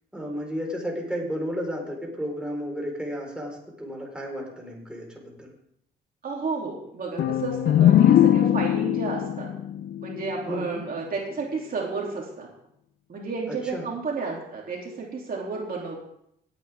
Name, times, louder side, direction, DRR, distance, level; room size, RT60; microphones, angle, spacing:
voice 1, 0.1-5.5 10.5-10.8 13.5-13.9, equal, 5° right, -1 dB, 4.5 m, -33 dB
voice 2, 6.2-9.5 10.0-12.5 13.1-16.0, right 4 dB, 45° right, -2 dB, 3.1 m, -32 dB
sound 1, 7.2-10.9, left 11 dB, 60° left, 0.5 m, -21 dB
17.5 x 9.1 x 3.6 m, 0.74 s
cardioid pair, 90°, 20 cm